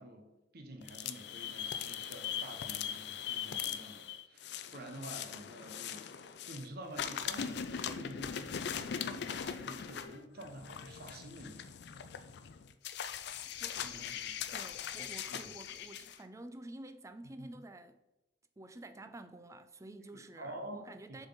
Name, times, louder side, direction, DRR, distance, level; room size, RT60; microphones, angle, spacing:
voice 1, 0.0-6.1 6.5-11.7 13.8-14.4 15.0-15.5 17.4-17.5 20.1-21.3, right 1 dB, 60° right, 1.1 m, -49 dB
sound 1, 0.8-6.7 6.9-16.2, left 8 dB, 65° left, 0.4 m, -40 dB
voice 2, 13.6-14.0 14.5-18.0 18.6-21.3, right 2 dB, 15° right, 0.4 m, -50 dB
6.9 x 4.1 x 4.0 m
head